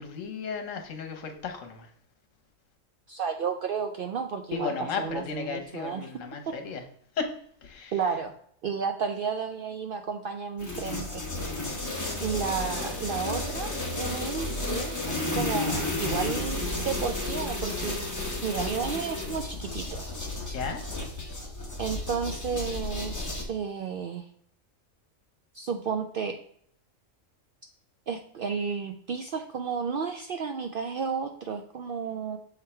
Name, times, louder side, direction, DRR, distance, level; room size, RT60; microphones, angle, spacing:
voice 1, 0.0-1.9 4.5-6.8 7.2-7.3 7.6-7.9 20.5-20.8, left 5 dB, 75° left, 5 dB, 1.3 m, -34 dB
voice 2, 3.1-6.1 6.5-6.6 7.9-8.3 8.6-11.3 12.2-18.0 18.4-20.1 21.8-24.2 25.5-26.4 28.1-32.4, right 6 dB, 65° right, 6 dB, 0.5 m, -32 dB
sound 1, 10.6-23.4, left 2 dB, 15° left, 1.0 m, -32 dB
6.5 x 3.6 x 4.3 m, 0.64 s
omnidirectional pair, 1.4 m